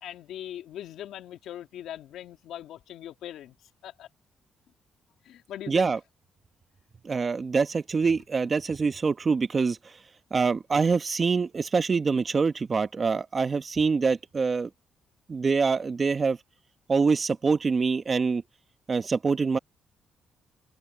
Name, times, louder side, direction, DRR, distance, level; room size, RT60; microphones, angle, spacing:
voice 1, 0.0-3.5 3.8-4.1 5.2-5.9, left 11 dB, 80° left, 2.6 m, -40 dB
voice 2, 5.7-6.0 7.0-10.0 10.3-14.7 15.3-16.4 16.9-18.4 18.9-19.6, right 4 dB, 35° right, 1.5 m, -25 dB
open air
cardioid pair, 90°, 0 cm